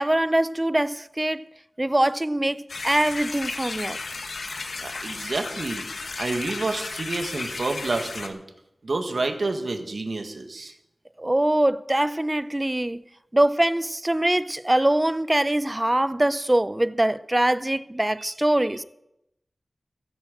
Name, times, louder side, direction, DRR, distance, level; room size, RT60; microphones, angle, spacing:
voice 1, 0.0-1.4 1.8-4.0 11.2-13.0 13.3-18.8, right 1 dB, 20° right, 0.6 m, -23 dB
sound 1, 2.7-8.3, left 3 dB, 80° left, 1.4 m, -34 dB
voice 2, 4.8-5.8 6.2-8.4 8.8-10.7 18.2-18.3 18.7-18.8, right 3 dB, 65° right, 1.8 m, -29 dB
15.0 x 8.8 x 7.5 m
wide cardioid pair, 80°, 0 cm